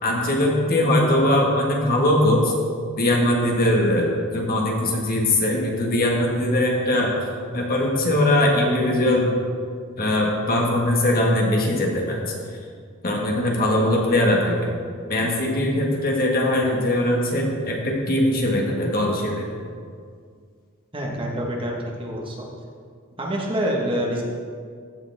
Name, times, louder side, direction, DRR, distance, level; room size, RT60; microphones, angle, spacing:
voice 1, 0.0-2.6 3.0-7.1 7.5-9.4 10.0-12.2 13.0-14.7 15.1-19.6, left 1 dB, 45° left, -1 dB, 1.7 m, -21 dB
voice 2, 20.9-22.5 23.2-24.2, equal, 25° right, -2 dB, 1.5 m, -26 dB
15.0 x 7.1 x 3.5 m, 2.1 s
head